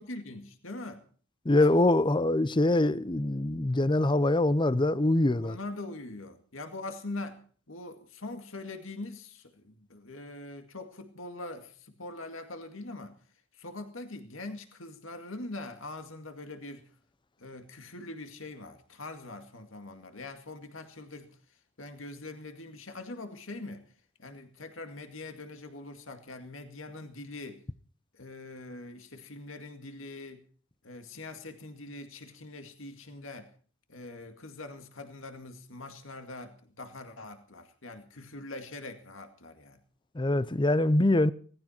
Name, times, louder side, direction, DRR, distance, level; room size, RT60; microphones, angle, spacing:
voice 1, 0.1-1.0 1.5-1.9 5.4-13.2 13.5-16.9 17.4-21.4 21.8-23.8 24.2-27.6 28.1-30.4 30.8-33.5 33.9-39.8, left 2 dB, 80° left, 2.2 m, -43 dB
voice 2, 1.4-5.6 40.1-41.3, left 2 dB, 25° left, 0.7 m, -24 dB
18.5 x 15.5 x 4.4 m
head